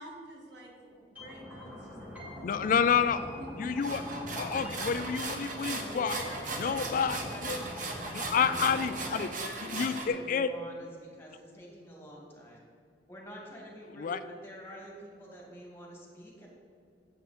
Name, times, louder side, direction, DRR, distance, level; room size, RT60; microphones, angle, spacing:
voice 1, 0.0-2.0 2.3-2.9 3.4-3.5, right 1 dB, 80° right, -1 dB, 2.0 m, -49 dB
sound 1, 1.2-9.2, equal, 10° right, 2.3 m, -43 dB
voice 2, 2.4-3.2 3.6-4.0 4.3-6.2 6.6-7.6 8.1-9.3 9.7-10.5 14.0-14.2, left 6 dB, 50° left, 12 dB, 0.3 m, -29 dB
sound 2, 3.8-10.1, right 3 dB, 50° right, 1.3 m, -38 dB
voice 3, 5.8-12.6 13.1-16.5, equal, 15° left, -2 dB, 2.3 m, -47 dB
9.2 x 8.4 x 4.3 m, 2.3 s
head